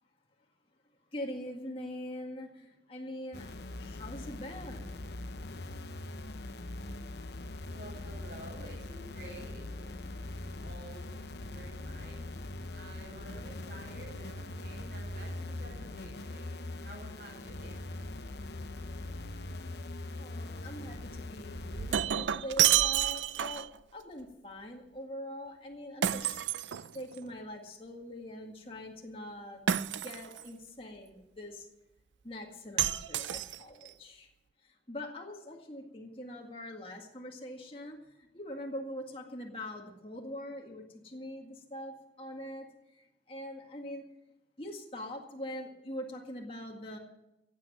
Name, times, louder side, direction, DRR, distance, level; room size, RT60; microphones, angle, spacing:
voice 1, 1.1-3.5 3.8-5.0 20.2-26.4 26.9-29.6 29.9-31.7 32.2-34.3 34.6-42.7 42.9-44.0 44.6-47.0, equal, 30° left, 0 dB, 1.9 m, -43 dB
sound 1, 3.3-22.0, left 2 dB, 70° left, 0.8 m, -42 dB
voice 2, 7.7-10.0 10.6-11.1 11.4-12.2 12.7-17.9, right 1 dB, 55° right, -7 dB, 5.5 m, -50 dB
Shatter, 21.5-23.8 26.0-27.3 29.7-30.5 32.8-33.9, right 10 dB, 85° right, 0.5 m, -29 dB
15.5 x 8.6 x 7.7 m, 0.91 s
head